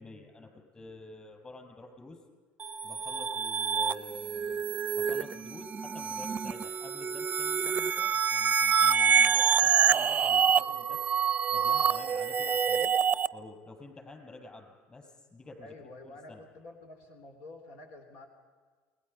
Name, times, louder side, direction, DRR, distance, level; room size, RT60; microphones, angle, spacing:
voice 1, 0.0-2.2 2.8-4.6 4.9-11.1 11.5-13.0 13.3-16.4, left 2 dB, 20° left, 2 dB, 5.9 m, -49 dB
sound 1, 2.6-13.3, right 7 dB, 30° right, 0.7 m, -27 dB
voice 2, 15.6-18.3, left 2 dB, 70° left, 5 dB, 3.2 m, -49 dB
29.0 x 21.0 x 5.5 m, 1.5 s
supercardioid pair, 125°, 5 cm